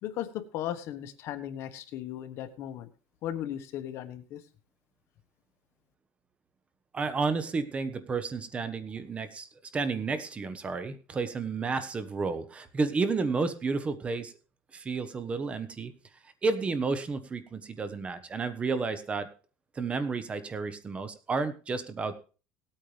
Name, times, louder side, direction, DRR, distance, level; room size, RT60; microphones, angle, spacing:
voice 1, 0.0-2.9 3.2-4.4, left 11 dB, 55° left, 10 dB, 1.3 m, -36 dB
voice 2, 6.9-9.5 9.7-14.3 14.7-15.9 16.4-19.3 19.8-22.1, right 4 dB, 25° right, 11 dB, 1.2 m, -31 dB
18.0 x 8.9 x 3.4 m, 0.36 s
cardioid pair, 130°, 5 cm